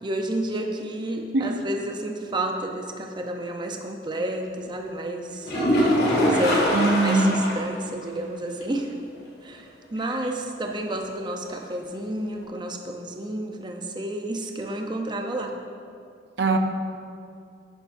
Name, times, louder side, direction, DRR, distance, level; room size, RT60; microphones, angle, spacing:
voice 1, 0.0-5.5 6.1-8.9 9.4-15.6, right 1 dB, 25° right, 2 dB, 0.6 m, -31 dB
sound 1, 5.4-7.7 8.0-8.1 8.6-8.7 12.4-12.5, equal, 65° left, 2.2 m, -22 dB
voice 2, 6.7-7.4 16.4-16.6, right 3 dB, 75° right, 5 dB, 0.7 m, -21 dB
12.0 x 9.4 x 2.6 m, 2.4 s
head